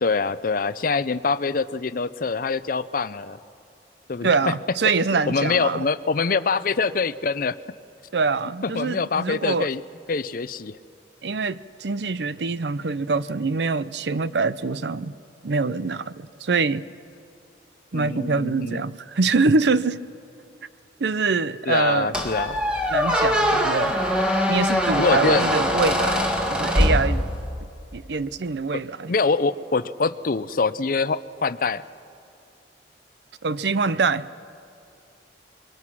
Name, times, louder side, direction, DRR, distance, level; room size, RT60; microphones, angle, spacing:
voice 1, 0.0-3.4 4.1-4.3 5.1-7.6 8.6-9.8 10.1-10.8 17.9-18.8 21.7-22.6 25.0-25.5 28.7-28.8 29.1-31.8, left 4 dB, 50° left, 0.5 m, -24 dB
voice 2, 4.2-5.8 8.1-9.7 11.2-15.1 15.4-16.8 17.9-20.0 21.0-22.2 22.9-24.0 24.5-27.3 27.9-29.1 33.4-34.3, right 4 dB, 70° right, 0.6 m, -24 dB
Squeak, 22.1-27.6, equal, 5° right, 1.7 m, -22 dB
27.0 x 22.5 x 6.1 m
head